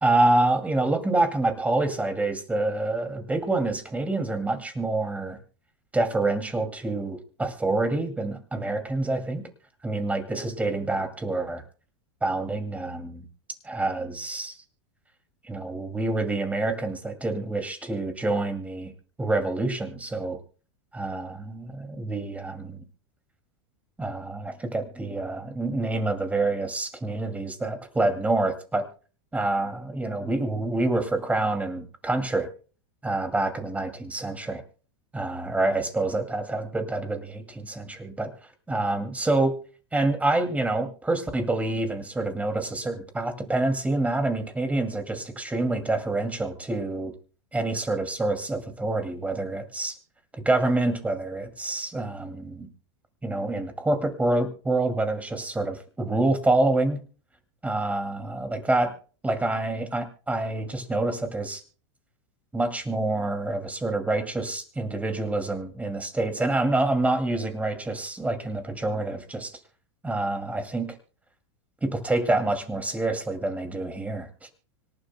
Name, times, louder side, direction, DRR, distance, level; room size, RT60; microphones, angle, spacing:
voice 1, 0.0-5.4 5.9-9.4 9.8-11.6 12.2-13.3 13.6-14.6 15.5-18.9 19.2-20.4 20.9-22.8 24.0-28.8 29.3-32.5 33.0-34.6 35.1-38.3 38.7-39.5 39.9-47.1 47.5-50.0 50.4-52.7 53.2-57.0 57.6-58.9 59.2-61.6 62.5-69.5 70.0-71.0 71.8-74.5, right 2 dB, 10° right, 6 dB, 2.4 m, -27 dB
25.5 x 11.5 x 2.2 m, 0.38 s
supercardioid pair, 125°, 16 cm